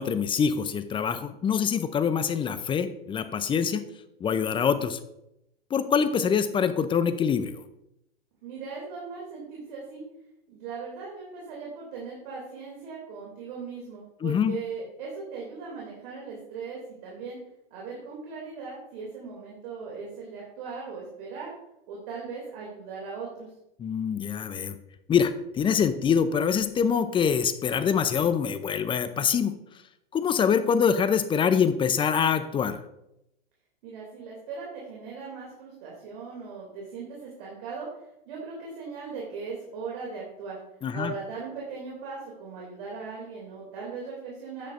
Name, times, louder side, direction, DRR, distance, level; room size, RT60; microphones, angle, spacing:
voice 1, 0.0-3.8 4.2-5.0 5.7-7.6 14.2-14.6 23.8-24.8 25.1-29.5 30.1-32.8 40.8-41.1, left 7 dB, 15° left, 12 dB, 0.5 m, -25 dB
voice 2, 8.4-10.0 10.5-17.4 17.7-21.5 21.9-23.5 33.8-37.9 38.3-40.6 40.9-44.7, right 5 dB, 55° right, -3 dB, 2.9 m, -39 dB
9.9 x 8.7 x 2.6 m, 0.84 s
hypercardioid pair, 105°, 30 cm